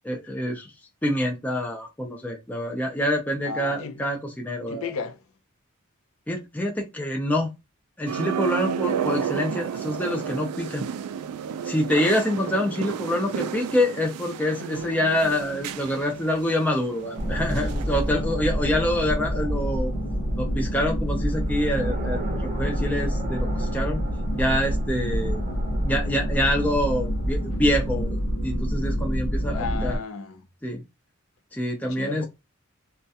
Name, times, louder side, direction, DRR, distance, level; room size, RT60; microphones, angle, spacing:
voice 1, 0.0-0.7 1.0-4.9 6.3-7.5 8.0-10.8 11.6-19.9 20.4-24.0 24.3-25.4 25.8-28.2 28.4-30.0 30.6-30.8 31.5-32.3, left 1 dB, 5° left, 0.4 m, -26 dB
voice 2, 3.4-4.0 4.7-5.2 29.5-30.4 31.9-32.3, left 5 dB, 65° left, 0.5 m, -33 dB
sound 1, 8.1-17.9 18.2-18.3, right 8 dB, 90° right, 0.3 m, -32 dB
sound 2, 14.7-28.5, right 2 dB, 40° right, 0.7 m, -41 dB
sound 3, 17.2-30.0, equal, 85° left, 0.9 m, -27 dB
2.3 x 2.1 x 2.6 m
head